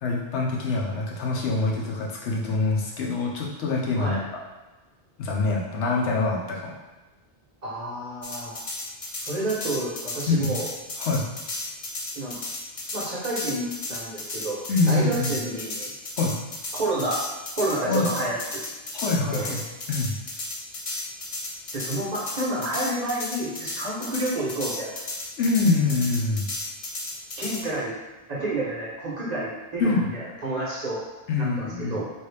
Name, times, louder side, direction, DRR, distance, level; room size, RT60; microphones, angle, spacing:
voice 1, 0.0-4.2 5.2-6.7 10.3-10.6 11.0-11.2 14.7-15.3 16.2-16.3 17.8-18.1 18.9-19.6 19.9-20.2 25.4-26.5 29.8-30.1 31.3-32.0, left 3 dB, 80° left, -2 dB, 1.0 m, -25 dB
voice 2, 7.6-8.6 9.3-10.7 12.1-12.4 12.9-15.9 16.7-17.2 17.6-18.6 19.3-19.5 21.7-24.9 27.4-27.9 28.3-31.0 31.4-32.0, right 2 dB, 40° right, -6 dB, 1.0 m, -29 dB
sound 1, 8.2-27.6, left 2 dB, 45° left, 0.5 m, -34 dB
3.1 x 2.6 x 3.2 m, 1.1 s
omnidirectional pair, 1.1 m